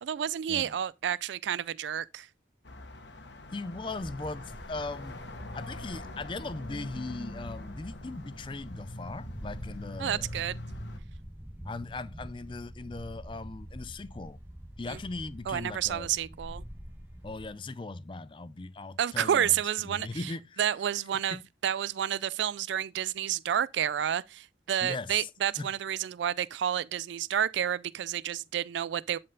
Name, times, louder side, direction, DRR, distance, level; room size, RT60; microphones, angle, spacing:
voice 1, 0.0-2.3 10.0-10.5 14.9-15.0 15.5-16.6 19.0-20.1 20.6-21.4 21.6-29.2, right 10 dB, 75° right, 0.3 m, -30 dB
sound 1, 2.7-11.0, left 1 dB, 75° left, 1.3 m, -44 dB
voice 2, 3.5-5.2 5.5-10.3 11.6-14.4 14.8-16.1 17.2-20.6 21.3-21.5 24.8-25.3 25.6-25.7, left 3 dB, 25° left, 0.4 m, -39 dB
sound 2, 3.8-17.5, equal, 10° right, 1.4 m, -46 dB
11.0 x 4.4 x 3.8 m
head